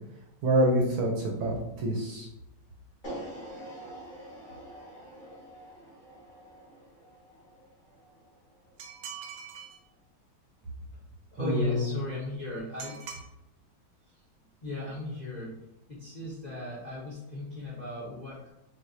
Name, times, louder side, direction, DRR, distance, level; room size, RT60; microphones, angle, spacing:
voice 1, 0.4-2.3 11.4-11.9, right 1 dB, 65° right, -1 dB, 1.0 m, -26 dB
sound 1, 3.0-9.2, right 1 dB, 30° left, 1.0 m, -46 dB
sound 2, 8.8-9.8 12.8-13.3, right 7 dB, 85° right, 1.5 m, -42 dB
voice 2, 11.3-13.2 14.6-15.6 15.9-18.5, left 2 dB, 85° left, -7 dB, 0.3 m, -37 dB
6.3 x 2.3 x 2.7 m, 0.86 s
omnidirectional pair, 2.2 m